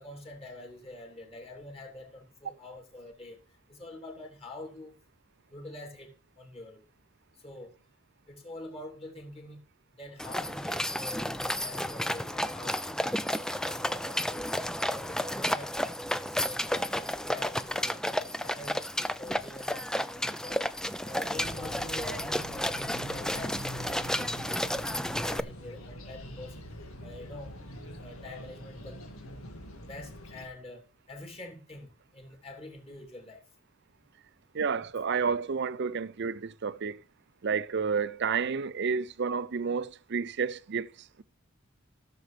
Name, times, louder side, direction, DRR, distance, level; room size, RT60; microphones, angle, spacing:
voice 1, 0.0-3.4 3.7-4.9 5.5-6.8 7.4-7.7 8.3-9.6 10.0-14.5 14.9-15.9 16.2-18.8 19.2-24.7 25.2-26.6 27.0-27.5 28.0-29.0 29.8-33.4, left 1 dB, 30° left, 3.1 m, -46 dB
sound 1, 10.2-25.4, left 1 dB, 5° left, 0.4 m, -32 dB
sound 2, 21.3-30.5, equal, 80° left, 2.0 m, -44 dB
voice 2, 34.5-37.0 37.4-41.2, right 5 dB, 55° right, 0.5 m, -30 dB
16.0 x 7.1 x 3.3 m
head